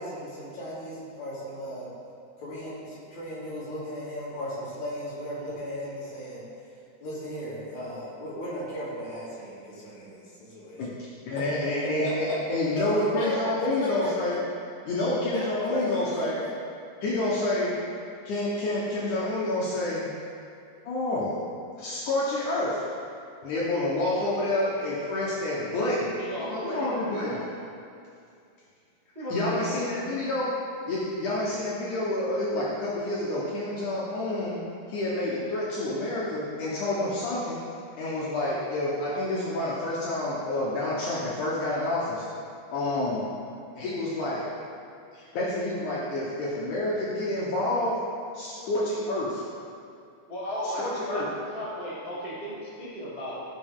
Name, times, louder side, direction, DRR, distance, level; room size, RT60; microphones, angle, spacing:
voice 1, 0.0-1.9 2.4-6.4 7.0-10.9 12.0-14.2 15.3-16.6, equal, 45° left, -9 dB, 3.5 m, -35 dB
voice 2, 10.8-14.3 14.8-16.3 17.0-17.8 18.2-20.1 20.8-21.4 21.8-22.8 23.4-26.1 26.4-27.4 29.3-30.5 30.9-34.6 34.9-37.6 38.0-42.2 42.7-43.3 43.8-44.4 45.1-48.0 48.3-49.4 50.8-51.2, left 1 dB, 90° left, -6 dB, 1.7 m, -28 dB
voice 3, 26.2-27.4 29.1-29.8 50.3-53.4, equal, 90° right, -11 dB, 0.3 m, -35 dB
15.5 x 6.1 x 3.7 m, 2.4 s
omnidirectional pair, 5.4 m